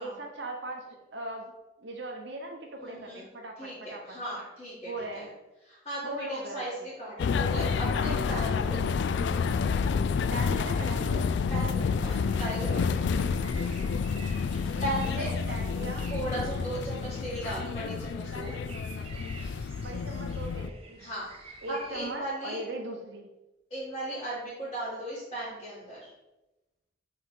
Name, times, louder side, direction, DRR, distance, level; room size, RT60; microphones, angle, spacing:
voice 1, 0.0-1.5 1.8-4.2 4.8-5.3 6.0-6.8 10.3-11.3 14.7-16.1 19.8-21.1 21.6-23.3, right 2 dB, 80° right, 1 dB, 0.9 m, -39 dB
voice 2, 2.8-3.3 3.6-5.3 5.7-8.8 11.5-13.0 14.8-15.3 16.1-18.5 21.0-22.6 23.7-26.1, right 1 dB, 30° left, -11 dB, 2.0 m, -37 dB
sound 1, 7.2-20.7, left 5 dB, 75° left, 0.3 m, -29 dB
sound 2, 11.5-22.2, right 3 dB, 30° right, 0.8 m, -49 dB
5.5 x 3.8 x 4.6 m, 1.0 s
head